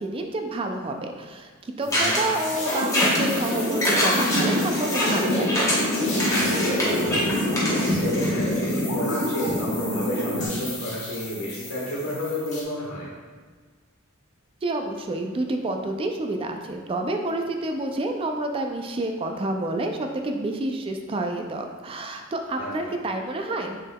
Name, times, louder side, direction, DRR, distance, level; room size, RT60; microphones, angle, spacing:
voice 1, 0.0-5.8 14.6-23.8, right 2 dB, 25° right, 4 dB, 0.3 m, -29 dB
sound 1, 1.8-12.6, left 2 dB, 35° left, 1.4 m, -37 dB
voice 2, 1.9-2.2 6.3-7.2 7.7-13.1 22.6-22.9, left 1 dB, 85° left, -4 dB, 1.4 m, -32 dB
sound 2, 1.9-8.8, equal, 15° left, 1.0 m, -25 dB
sound 3, 2.5-10.5, left 1 dB, 55° left, 1.0 m, -26 dB
6.4 x 3.5 x 2.2 m, 1.5 s
head